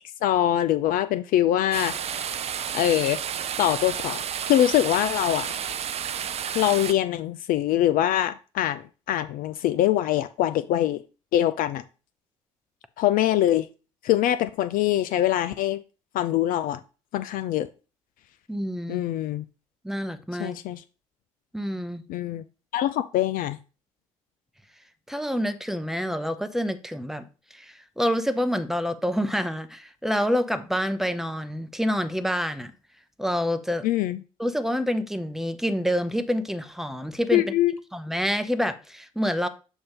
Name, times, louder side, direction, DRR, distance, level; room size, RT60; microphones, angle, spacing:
voice 1, 0.2-2.3 2.7-3.2 3.6-5.5 6.5-11.0 11.3-11.8 13.0-13.7 14.0-15.8 16.1-16.8 17.1-17.7 18.9-19.4 20.4-20.8 22.1-22.4 22.7-23.6 33.8-34.2 37.3-37.7, left 12 dB, 50° left, 0.4 m, -23 dB
sound 1, 1.7-6.9, right 8 dB, 35° right, 0.5 m, -31 dB
voice 2, 18.5-19.1 19.8-20.6 21.5-22.0 25.1-27.2 27.5-32.7 33.2-33.9 34.4-37.4 37.9-39.5, equal, ahead, 0.8 m, -27 dB
7.0 x 2.6 x 5.3 m
figure-of-eight pair, 55°, 18 cm